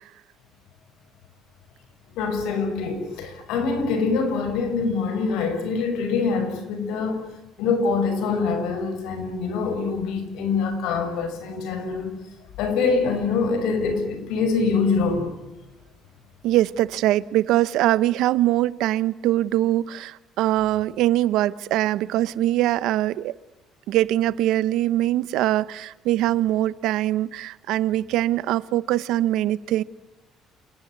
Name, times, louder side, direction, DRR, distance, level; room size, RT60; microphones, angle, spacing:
voice 1, 2.1-7.2 7.6-12.1 12.6-15.3, left 4 dB, 85° left, 6.4 m, -24 dB
voice 2, 16.4-23.4 23.9-29.8, right 14 dB, 75° right, 0.9 m, -22 dB
28.5 x 18.5 x 9.7 m
cardioid pair, 145°, 0 cm